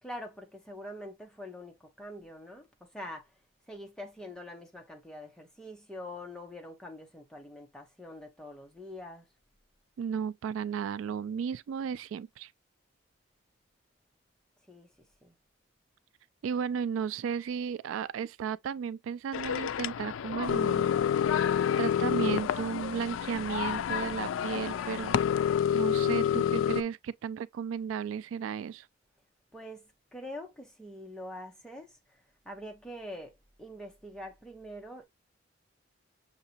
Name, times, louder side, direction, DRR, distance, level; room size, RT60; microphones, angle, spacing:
voice 1, 0.0-3.3 3.7-9.2 14.7-14.9 15.2-15.3 29.5-32.0 32.4-33.3 33.6-35.0, left 1 dB, 5° left, 0.9 m, -44 dB
voice 2, 10.0-12.5 16.4-20.9 21.8-25.1 25.7-28.9, right 7 dB, 90° right, 0.3 m, -34 dB
sound 1, 19.3-26.8, left 8 dB, 85° left, 0.3 m, -28 dB
6.5 x 2.8 x 2.8 m
head